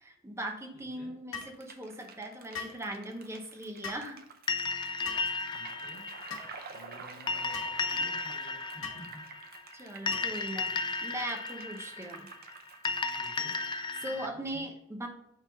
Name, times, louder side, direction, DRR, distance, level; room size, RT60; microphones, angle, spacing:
voice 1, 0.0-4.2 9.7-12.3 13.7-15.1, right 1 dB, 15° right, 4 dB, 0.8 m, -39 dB
voice 2, 0.7-1.1 5.5-6.1 6.7-9.2 13.1-13.5 14.1-14.7, equal, 55° left, -11 dB, 2.6 m, -52 dB
sound 1, 1.3-1.6 2.5-2.8 3.8-4.1 5.0-5.3 6.3-6.5 7.5-7.8 8.8-9.0 10.1-10.4, left 6 dB, 80° left, 1.1 m, -40 dB
sound 2, 1.4-13.7, right 5 dB, 50° right, 0.6 m, -50 dB
sound 3, 4.5-14.3, left 4 dB, 25° left, 0.4 m, -35 dB
5.5 x 3.5 x 5.2 m, 0.77 s
head